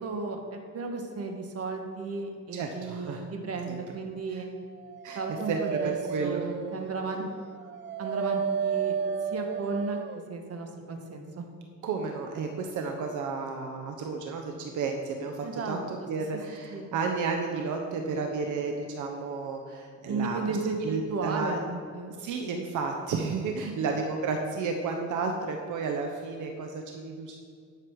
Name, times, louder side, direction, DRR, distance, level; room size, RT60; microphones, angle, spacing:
voice 1, 0.0-4.5 5.1-7.2 8.0-9.0 9.3-10.0 10.3-11.4 15.4-15.8 16.7-16.9 20.1-22.1 23.6-23.7, right 3 dB, 55° right, 3 dB, 1.6 m, -34 dB
voice 2, 2.5-3.2 3.7-3.8 4.3-4.4 5.0-5.2 5.5-6.5 7.2-7.3 11.8-21.6 22.2-27.4, right 4 dB, 80° right, 3 dB, 1.0 m, -32 dB
Dog, 4.7-10.3, right 7 dB, 40° right, 0.5 m, -33 dB
11.0 x 6.7 x 4.8 m, 2.2 s
cardioid pair, 90°, 30 cm